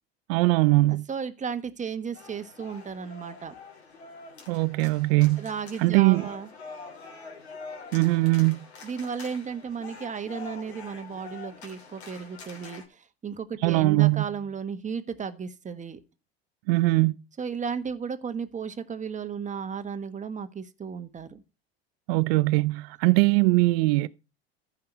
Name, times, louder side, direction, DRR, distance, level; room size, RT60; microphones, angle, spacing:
voice 1, 0.3-1.1 4.5-5.4 5.8-6.3 7.9-8.6 13.6-14.3 16.7-17.1 22.1-24.1, right 22 dB, 65° right, 0.6 m, -21 dB
voice 2, 1.1-3.5 5.4-6.5 8.8-16.0 17.4-21.4, right 6 dB, 25° right, 1.4 m, -34 dB
sound 1, 2.1-12.8, left 4 dB, 90° left, 3.0 m, -45 dB
14.5 x 5.9 x 4.5 m
hypercardioid pair, 85°, 31 cm